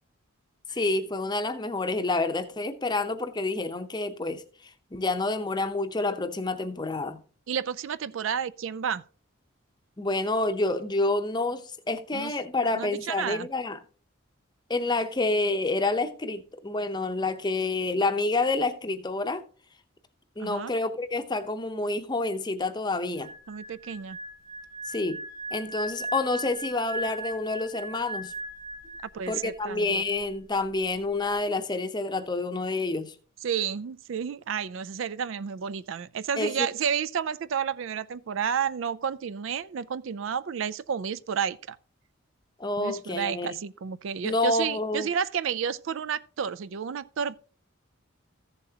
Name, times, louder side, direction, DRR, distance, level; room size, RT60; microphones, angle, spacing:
voice 1, 0.7-4.4 4.9-7.2 10.0-13.8 14.7-19.4 20.4-23.3 24.9-25.2 25.5-28.3 29.3-33.1 36.4-36.7 42.6-43.6 44.2-45.1, left 2 dB, 20° left, 0.7 m, -28 dB
voice 2, 7.5-9.0 12.1-12.3 12.7-13.5 20.4-20.7 23.5-24.2 29.1-30.0 33.4-41.8 42.8-47.4, right 7 dB, 70° right, 0.4 m, -31 dB
sound 1, 23.2-29.5 29.8-30.1, right 1 dB, 40° right, 2.4 m, -38 dB
14.5 x 7.3 x 2.8 m
head